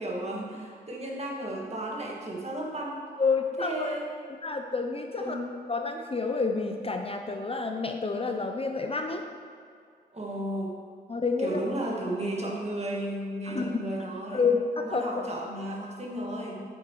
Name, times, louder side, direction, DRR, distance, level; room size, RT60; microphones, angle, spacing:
voice 1, 0.0-3.0 3.6-4.1 5.2-5.4 10.1-10.8 11.4-14.5 14.8-16.6, right 1 dB, 35° right, -2 dB, 1.9 m, -34 dB
voice 2, 3.2-4.0 4.4-5.4 5.7-9.3 11.1-11.6 13.5-15.3, left 4 dB, 30° left, 4 dB, 0.6 m, -29 dB
8.2 x 8.0 x 3.1 m, 2.2 s
cardioid pair, 55°, 18 cm